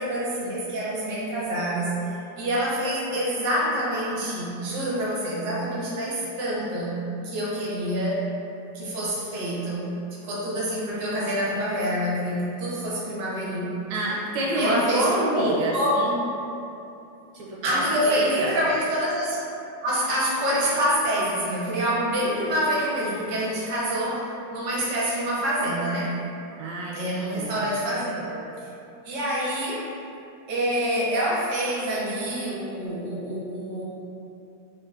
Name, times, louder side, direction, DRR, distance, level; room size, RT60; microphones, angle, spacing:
voice 1, 0.0-8.3 8.7-9.9 10.2-13.7 14.6-16.0 17.6-19.4 19.8-26.2 26.9-28.4 29.0-29.9 30.5-33.8, equal, 60° right, -6 dB, 0.8 m, -26 dB
voice 2, 13.9-16.2 17.3-18.5 26.6-27.1 27.3-27.7, right 1 dB, 80° right, -4 dB, 1.2 m, -28 dB
3.8 x 2.4 x 2.3 m, 2.8 s
omnidirectional pair, 2.0 m